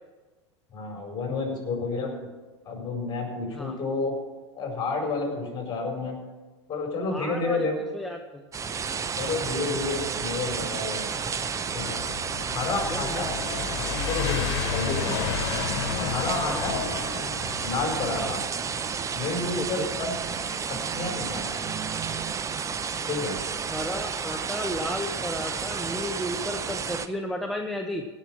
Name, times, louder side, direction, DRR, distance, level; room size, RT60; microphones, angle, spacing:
voice 1, 0.7-2.3 2.6-4.2 4.5-6.2 6.7-7.7 9.2-11.2 11.7-12.0 12.5-13.3 13.7-15.2 15.9-16.8 17.6-18.4 19.1-20.2 20.7-21.6 23.1-23.4, left 3 dB, 30° left, 1 dB, 4.7 m, -30 dB
voice 2, 7.1-7.7 7.9-8.5 12.9-13.3 16.4-16.6 18.2-18.3 19.6-19.9 23.6-28.0, equal, ahead, 2 dB, 0.9 m, -33 dB
sound 1, 8.5-27.1, right 6 dB, 20° right, 0.8 m, -31 dB
sound 2, 11.8-18.5, left 8 dB, 55° left, 1.8 m, -32 dB
17.0 x 6.3 x 7.3 m, 1.3 s
hypercardioid pair, 95°, 15 cm